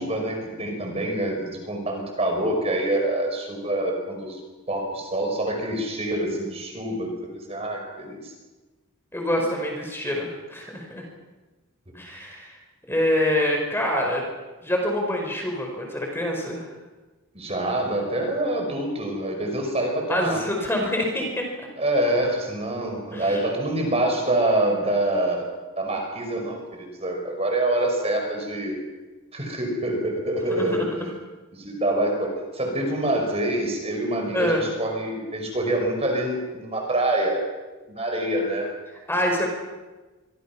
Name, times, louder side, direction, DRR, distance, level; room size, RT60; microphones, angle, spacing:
voice 1, 0.0-4.4 4.7-7.1 7.5-8.3 17.3-20.4 21.8-25.5 25.8-28.8 29.3-30.9 31.5-37.4 37.9-38.7, right 1 dB, 30° right, 2 dB, 5.5 m, -26 dB
voice 2, 9.1-11.0 11.9-12.6 12.9-14.2 14.6-16.7 20.1-21.4 23.1-23.4 30.6-31.1 34.3-34.7 39.1-39.5, left 1 dB, 10° left, 1 dB, 5.2 m, -26 dB
26.5 x 24.5 x 6.1 m, 1.2 s
head